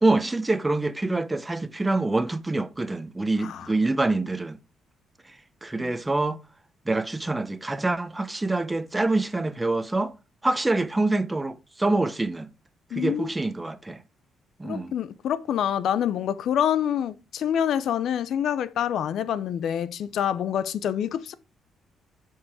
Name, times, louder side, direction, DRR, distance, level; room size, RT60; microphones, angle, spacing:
voice 1, 0.0-4.6 5.6-6.4 6.9-10.1 10.4-12.5 12.9-14.0 14.6-14.9, right 2 dB, 15° right, 0.7 m, -25 dB
voice 2, 12.9-13.3 14.6-21.3, left 9 dB, 70° left, 0.6 m, -26 dB
8.5 x 4.7 x 4.8 m
cardioid pair, 90°, 0 cm